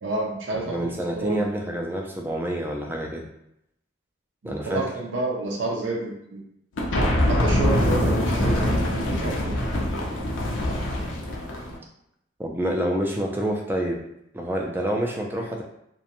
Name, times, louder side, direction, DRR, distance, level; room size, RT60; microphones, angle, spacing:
voice 1, 0.0-1.5 4.4-6.4 7.3-9.5 10.2-10.3, right 2 dB, 80° right, -1 dB, 0.5 m, -29 dB
voice 2, 0.7-3.2 4.4-4.8 7.8-8.2 12.4-14.0 14.3-15.6, equal, 10° right, 0 dB, 0.3 m, -28 dB
sound 1, 6.8-11.8, left 1 dB, 80° left, 0.5 m, -24 dB
2.4 x 2.2 x 2.9 m, 0.79 s
head